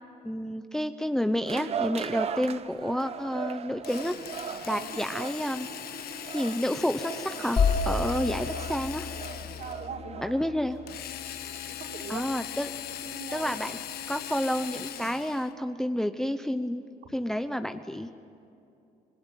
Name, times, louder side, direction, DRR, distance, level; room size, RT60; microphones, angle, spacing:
voice 1, 0.2-4.2 4.7-5.7 6.3-9.1 10.2-10.8 12.1-12.7 13.3-13.8 14.1-16.9 17.1-18.1, equal, 5° left, 8 dB, 0.8 m, -30 dB
sound 1, 1.5-11.6, right 7 dB, 40° right, 0.9 m, -39 dB
Drill, 3.8-9.9 10.9-15.5, left 10 dB, 65° left, 1.3 m, -40 dB
sound 2, 7.6-11.3, left 5 dB, 35° left, 4.8 m, -31 dB
voice 2, 9.6-10.5 11.7-12.4 13.0-13.5, right 6 dB, 55° right, -3 dB, 5.8 m, -40 dB
27.0 x 21.5 x 9.1 m, 2.7 s
cardioid pair, 110°, 17 cm